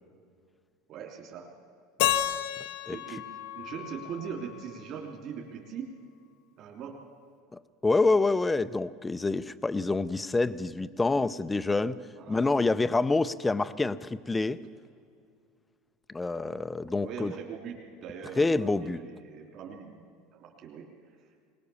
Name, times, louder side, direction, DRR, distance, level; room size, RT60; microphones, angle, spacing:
voice 1, 0.9-1.5 2.9-5.9 6.6-7.0 12.2-12.5 17.0-20.9, right 7 dB, 45° right, -1 dB, 3.3 m, -41 dB
Keyboard (musical), 2.0-5.0, left 12 dB, 70° left, 0.9 m, -32 dB
voice 2, 7.5-12.0 12.3-14.6 16.1-17.3 18.4-19.0, left 3 dB, 10° left, 14 dB, 0.6 m, -27 dB
22.0 x 19.5 x 7.1 m, 2.3 s
supercardioid pair, 125°, 0 cm